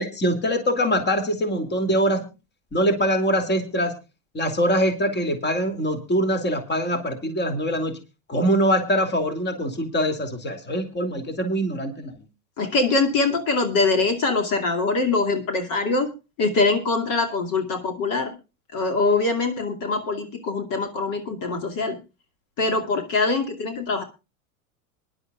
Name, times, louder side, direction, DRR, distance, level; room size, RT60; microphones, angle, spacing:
voice 1, 0.0-2.2 2.7-3.9 4.3-8.0 8.3-12.1, equal, 25° left, 7 dB, 2.7 m, -23 dB
voice 2, 12.6-16.1 16.4-18.3 18.7-22.0 22.6-24.0, left 3 dB, 50° left, 5 dB, 2.5 m, -23 dB
23.5 x 11.0 x 2.4 m, 0.28 s
supercardioid pair, 110°, 42 cm